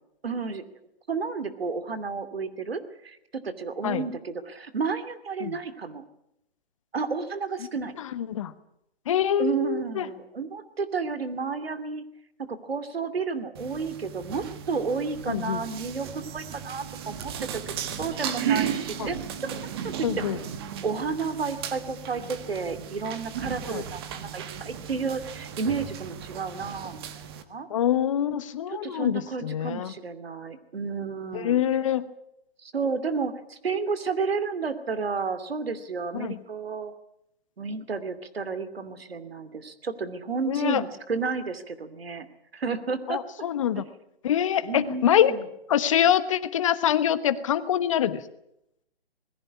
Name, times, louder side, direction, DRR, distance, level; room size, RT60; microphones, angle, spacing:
voice 1, 0.2-0.6 1.1-3.2 3.4-6.0 6.9-7.9 9.4-12.0 12.5-19.2 19.4-20.2 20.8-27.2 27.5-27.7 28.7-31.6 32.6-36.9 37.6-42.3 42.5-43.2 44.6-45.4, right 5 dB, 70° right, 11 dB, 2.7 m, -31 dB
voice 2, 8.0-8.5 9.1-10.1 15.3-15.6 19.0-19.1 20.0-20.4 23.6-23.8 27.7-29.9 31.3-32.1 36.1-36.3 40.5-40.8 43.1-43.8 44.2-45.3 45.7-48.2, left 10 dB, 30° left, 13 dB, 1.2 m, -25 dB
sound 1, 13.5-27.4, right 8 dB, 25° right, 1.5 m, -35 dB
20.5 x 15.0 x 9.9 m, 0.79 s
hypercardioid pair, 155°, 31 cm